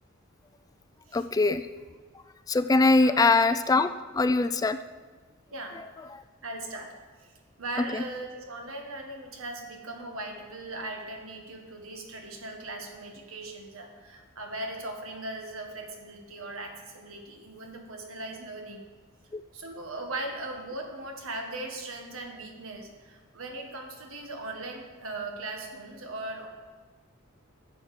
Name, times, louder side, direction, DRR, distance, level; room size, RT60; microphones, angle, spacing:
voice 1, 1.1-1.7 2.5-4.8 6.0-6.2 7.9-8.0 19.3-19.4, left 3 dB, 15° left, 11 dB, 0.3 m, -23 dB
voice 2, 3.0-3.4 5.5-5.8 6.4-6.9 7.2-7.3 7.6-18.8 19.5-26.5, right 2 dB, 85° right, 3 dB, 1.6 m, -39 dB
11.5 x 7.2 x 5.0 m, 1.4 s
head